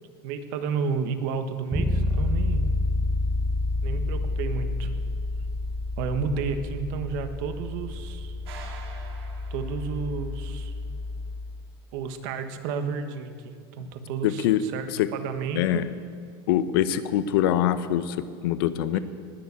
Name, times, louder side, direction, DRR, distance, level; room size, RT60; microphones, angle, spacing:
voice 1, 0.2-2.6 3.8-4.9 6.0-8.4 9.5-10.7 11.9-14.9 15.1-15.8, right 5 dB, 55° right, 8 dB, 1.3 m, -31 dB
Bass guitar, 1.7-11.6, left 2 dB, ahead, 0.8 m, -29 dB
sound 1, 8.4-10.4, right 5 dB, 90° right, 2.7 m, -46 dB
voice 2, 14.2-14.6 14.9-15.1 15.6-15.9 16.5-19.0, left 11 dB, 65° left, 13 dB, 0.8 m, -24 dB
19.5 x 7.2 x 8.2 m, 2.2 s
supercardioid pair, 155°, 13 cm